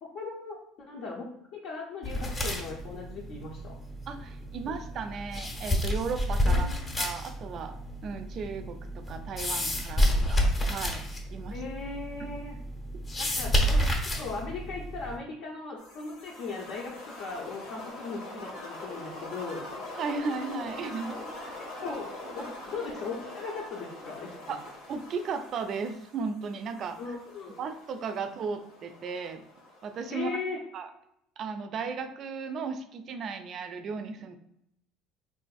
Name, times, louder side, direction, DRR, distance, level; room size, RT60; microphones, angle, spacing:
voice 1, 0.0-3.7 6.4-7.0 11.5-12.6 13.2-13.9 14.2-19.6 21.8-24.6 27.0-27.6 30.1-30.6, left 4 dB, 70° left, -4 dB, 0.6 m, -38 dB
sound 1, 2.0-15.2, equal, 25° left, 0.7 m, -30 dB
voice 2, 4.1-6.7 7.0-7.7 8.0-11.0 11.3-11.6 20.0-21.6 24.5-24.6 24.9-27.2 27.6-29.4 29.8-30.4 30.7-30.9 31.4-34.4, right 5 dB, 50° right, 8 dB, 0.4 m, -35 dB
sound 2, 15.8-30.1, left 2 dB, 85° left, 1.0 m, -43 dB
3.7 x 2.5 x 2.3 m, 0.77 s
supercardioid pair, 110°, 0 cm